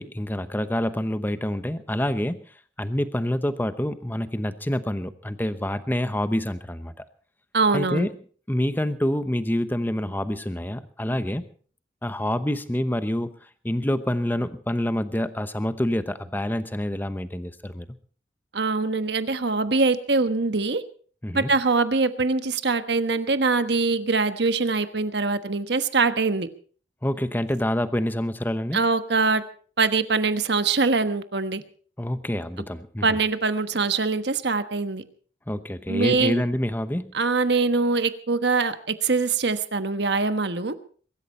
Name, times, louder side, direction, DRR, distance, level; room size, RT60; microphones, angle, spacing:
voice 1, 0.0-2.4 2.8-7.0 7.7-8.1 8.5-11.5 12.0-13.3 13.6-17.9 21.2-21.5 27.0-28.8 32.0-33.2 35.5-37.1, left 1 dB, 10° left, 12 dB, 0.9 m, -27 dB
voice 2, 7.5-8.1 18.5-20.8 21.3-26.5 28.7-29.4 29.8-31.6 33.0-35.0 35.9-36.4 37.1-40.7, right 4 dB, 60° right, 10 dB, 1.2 m, -23 dB
23.0 x 13.0 x 4.3 m, 0.44 s
head